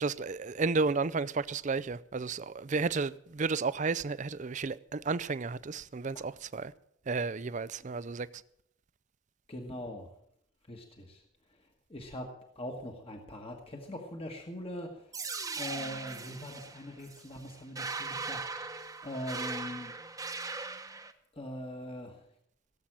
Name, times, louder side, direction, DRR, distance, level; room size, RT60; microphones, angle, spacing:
voice 1, 0.0-6.7 7.1-8.3, right 4 dB, 40° right, 0.5 m, -32 dB
voice 2, 9.5-10.1 10.7-11.2 11.9-14.9 15.6-18.4 19.0-19.9 21.3-22.2, left 1 dB, 30° left, 1.4 m, -41 dB
sound 1, 15.1-21.1, right 4 dB, 15° right, 1.0 m, -39 dB
17.0 x 7.7 x 8.8 m
head